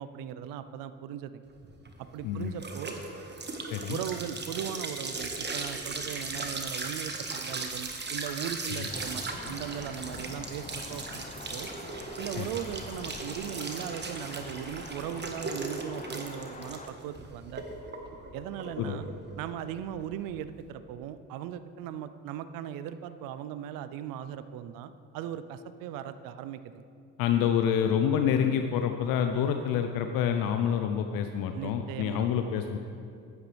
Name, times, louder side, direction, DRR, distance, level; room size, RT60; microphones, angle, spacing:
voice 1, 0.0-1.4 2.0-3.0 3.9-11.7 12.2-17.6 18.3-19.1 19.4-26.8 31.5-32.3, right 10 dB, 60° right, 12 dB, 0.6 m, -38 dB
sound 1, 1.6-20.7, right 3 dB, 30° right, 1.5 m, -38 dB
voice 2, 2.2-2.6 3.7-4.0 8.7-8.9 12.4-12.5 18.8-19.1 27.2-32.8, left 8 dB, 65° left, 6 dB, 0.7 m, -27 dB
Thunder, 8.9-16.9, left 3 dB, 20° left, 0.9 m, -44 dB
14.0 x 9.4 x 3.4 m, 2.4 s
hypercardioid pair, 55°, 37 cm